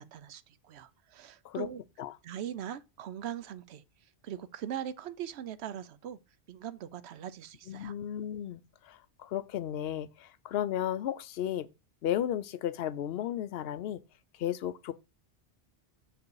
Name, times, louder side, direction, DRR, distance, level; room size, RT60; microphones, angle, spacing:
voice 1, 0.0-1.8 2.2-3.8 4.2-6.2 6.5-7.9, right 10 dB, 75° right, 0.8 m, -41 dB
voice 2, 7.7-11.7 12.0-14.0 14.4-14.9, left 11 dB, 65° left, 0.8 m, -34 dB
6.8 x 4.8 x 4.7 m
omnidirectional pair, 1.2 m